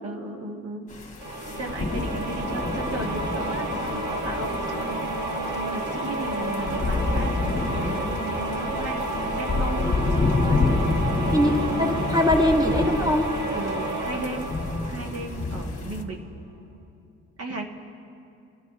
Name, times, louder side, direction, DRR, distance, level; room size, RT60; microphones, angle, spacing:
voice 1, 0.0-0.9 1.5-5.0 5.5-9.0 9.4-10.0 10.3-10.8 13.5-14.5 14.9-16.3 17.4-17.7, right 2 dB, 50° right, 1 dB, 1.5 m, -35 dB
sound 1, 0.9-16.0, left 3 dB, 25° left, 1.6 m, -29 dB
sound 2, 1.2-15.8, right 1 dB, 80° right, 1.8 m, -30 dB
voice 2, 11.8-13.3, left 1 dB, 15° right, 1 dB, 1.6 m, -21 dB
24.5 x 11.5 x 3.1 m, 2.5 s
cardioid pair, 90°, 30 cm